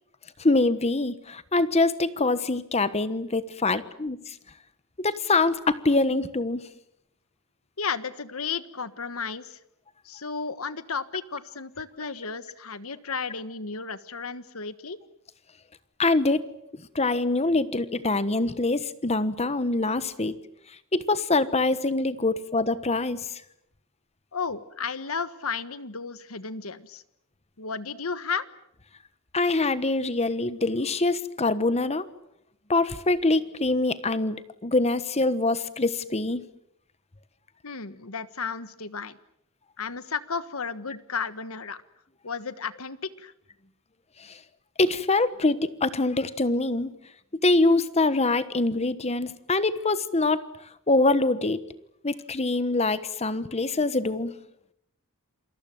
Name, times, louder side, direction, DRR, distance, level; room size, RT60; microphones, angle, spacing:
voice 1, 0.4-4.4 5.0-6.6 16.0-16.4 16.9-20.4 20.9-23.4 29.3-32.1 32.7-36.5 44.2-44.4 44.8-46.9 47.4-50.4 50.9-51.6 52.0-54.3, left 2 dB, 30° left, 14 dB, 1.2 m, -24 dB
voice 2, 7.8-9.6 10.0-15.0 24.3-27.0 27.6-28.5 37.6-39.2 39.8-41.8 42.2-43.3, left 5 dB, 85° left, 14 dB, 1.5 m, -33 dB
28.5 x 22.5 x 7.8 m, 0.76 s
head